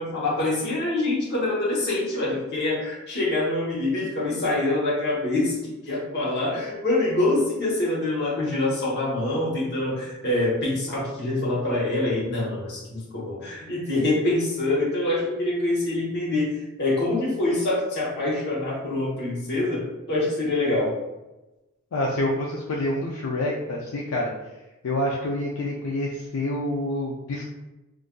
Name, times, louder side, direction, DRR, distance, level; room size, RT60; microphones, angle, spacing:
voice 1, 0.0-5.6 5.9-20.9, left 2 dB, 50° left, -5 dB, 1.1 m, -25 dB
voice 2, 21.9-24.3 24.8-27.5, left 1 dB, 70° left, -2 dB, 0.4 m, -27 dB
3.7 x 2.5 x 2.3 m, 1.0 s
head